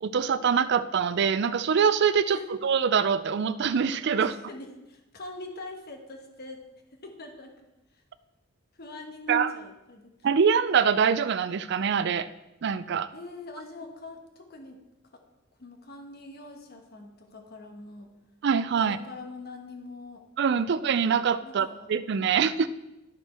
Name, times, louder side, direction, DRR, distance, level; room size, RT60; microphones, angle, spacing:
voice 1, 0.0-4.3 9.3-9.5 10.2-12.3 12.6-13.1 18.4-19.0 20.4-22.7, right 6 dB, 55° right, 14 dB, 0.4 m, -24 dB
voice 2, 4.2-6.6 7.0-7.7 8.8-10.1 13.1-14.8 15.1-15.2 15.6-18.1 18.8-20.2 21.4-21.9, left 2 dB, 50° left, 3 dB, 1.2 m, -43 dB
12.5 x 4.5 x 4.3 m, 0.95 s
head